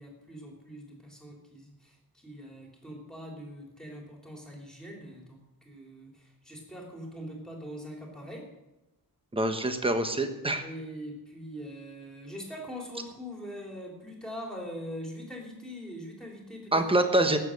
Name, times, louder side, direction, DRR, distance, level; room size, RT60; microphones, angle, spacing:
voice 1, 0.0-5.4 5.6-8.4 10.5-17.4, equal, ahead, -1 dB, 3.1 m, -42 dB
voice 2, 9.3-10.7 16.7-17.4, right 1 dB, 15° right, 7 dB, 1.1 m, -25 dB
18.5 x 7.4 x 6.4 m, 1.0 s
wide cardioid pair, 165°, 38 cm